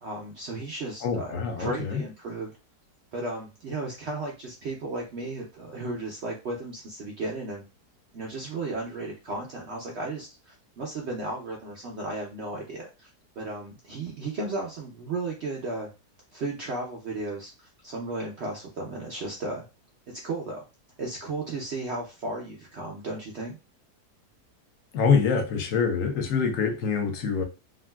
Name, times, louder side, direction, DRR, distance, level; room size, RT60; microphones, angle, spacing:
voice 1, 0.0-2.5 3.1-7.6 8.1-13.1 13.4-15.9 16.3-19.6 20.1-20.6 21.0-23.6, right 2 dB, 65° right, 0 dB, 0.6 m, -34 dB
voice 2, 1.0-2.0 24.9-27.4, left 5 dB, 60° left, 5 dB, 1.0 m, -25 dB
3.6 x 2.3 x 2.2 m, 0.29 s
omnidirectional pair, 1.8 m